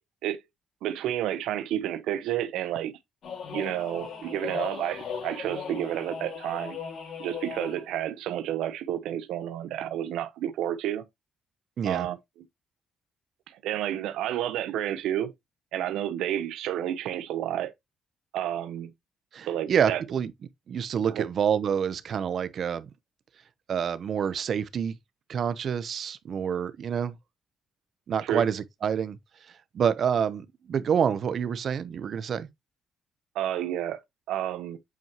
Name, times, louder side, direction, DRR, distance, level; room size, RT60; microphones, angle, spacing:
voice 1, 0.8-2.9 3.5-6.8 7.2-11.0 11.8-12.2 13.5-15.3 15.7-17.7 18.3-18.9 19.5-20.0 21.1-21.3 28.2-28.4 33.3-34.0 34.3-34.8, right 11 dB, 90° right, 0.8 m, -30 dB
sound 1, 3.2-7.9, left 6 dB, 65° left, 2.2 m, -38 dB
voice 2, 11.8-12.1 19.3-20.3 20.7-22.9 23.7-25.0 25.3-27.2 28.1-29.2 29.7-32.5, right 8 dB, 60° right, 0.8 m, -27 dB
8.3 x 4.6 x 3.0 m
cardioid pair, 90°, 0 cm